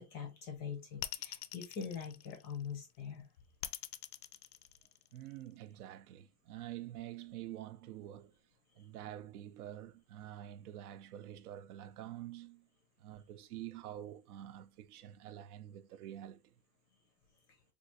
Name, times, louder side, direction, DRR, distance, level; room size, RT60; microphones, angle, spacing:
voice 1, 0.0-3.3, left 7 dB, 20° left, 0.5 m, -43 dB
sound 1, 1.0-2.8 3.6-5.4, left 13 dB, 80° left, 0.5 m, -43 dB
voice 2, 5.1-8.4 8.8-12.7 13.0-16.5, right 12 dB, 70° right, 0.5 m, -47 dB
3.6 x 2.5 x 2.6 m
supercardioid pair, 145°, 47 cm